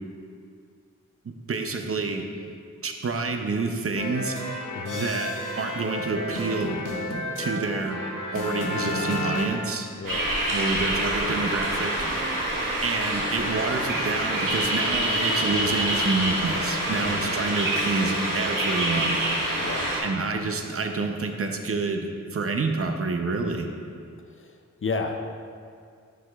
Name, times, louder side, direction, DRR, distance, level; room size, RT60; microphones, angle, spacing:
voice 1, 1.2-2.3 2.8-4.4 4.9-6.8 7.4-8.0 8.3-9.9 10.5-12.0 12.8-19.2 20.0-23.7, right 3 dB, 45° right, 5 dB, 0.6 m, -28 dB
sound 1, 3.9-9.5, left 1 dB, 80° left, 0.8 m, -31 dB
voice 2, 4.7-5.1 10.0-10.3 17.0-17.4 19.6-19.9 24.3-25.3, left 4 dB, 40° left, 4 dB, 0.5 m, -33 dB
sound 2, 10.0-20.0, right 1 dB, 90° right, 1.2 m, -26 dB
9.7 x 4.9 x 2.3 m, 2.2 s
wide cardioid pair, 65°, 31 cm